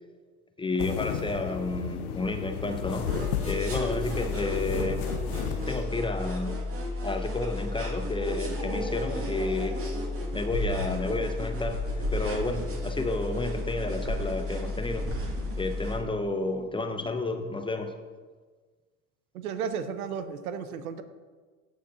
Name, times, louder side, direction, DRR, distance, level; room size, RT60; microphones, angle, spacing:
voice 1, 0.6-5.1 5.7-6.6 7.0-9.8 10.3-15.1 15.5-17.9, left 2 dB, 10° left, 7 dB, 0.7 m, -31 dB
sound 1, 0.8-5.8, left 8 dB, 75° left, 0.8 m, -34 dB
sound 2, 3.0-16.0, left 1 dB, 30° right, 2.2 m, -32 dB
voice 2, 19.3-21.0, right 7 dB, 75° right, 10 dB, 0.8 m, -33 dB
14.5 x 6.5 x 2.8 m, 1.4 s
hypercardioid pair, 75°, 45 cm